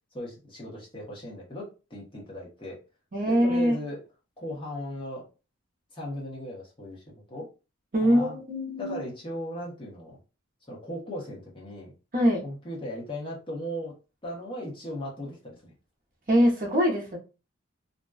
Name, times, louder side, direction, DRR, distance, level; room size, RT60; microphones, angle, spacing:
voice 1, 0.1-2.8 3.2-4.0 4.4-5.3 5.9-7.5 8.0-8.4 8.8-10.2 10.7-11.9 12.4-14.0 14.2-15.7, equal, 25° left, -4 dB, 0.9 m, -37 dB
voice 2, 3.1-3.8 7.9-9.0 12.1-12.4 16.3-17.2, equal, 40° right, 0 dB, 0.7 m, -23 dB
2.5 x 2.2 x 2.3 m, 0.31 s
head